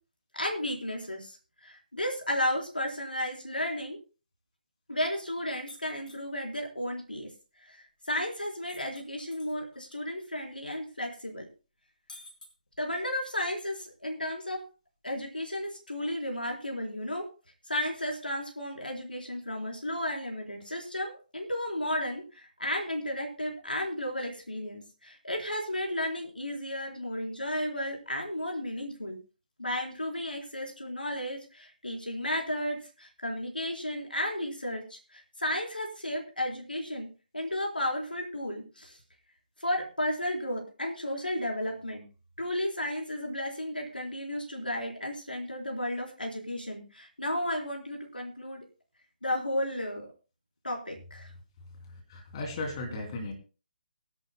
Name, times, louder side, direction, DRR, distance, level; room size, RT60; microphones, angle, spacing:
voice 1, 0.3-1.4 1.6-4.0 4.9-7.3 7.6-11.4 12.8-14.6 15.0-17.2 17.7-29.2 29.6-37.1 37.3-39.0 39.6-42.0 42.4-48.6 49.2-50.1 50.6-51.3, left 1 dB, 85° left, 0 dB, 4.0 m, -33 dB
sound 1, 5.7-6.2 8.7-10.0 10.3-10.4 12.1-13.0, left 2 dB, 65° left, 5.1 m, -50 dB
voice 2, 51.9-53.3, left 2 dB, 30° left, 2 dB, 2.9 m, -36 dB
23.5 x 11.0 x 2.3 m, 0.34 s
figure-of-eight pair, 145°, 5 cm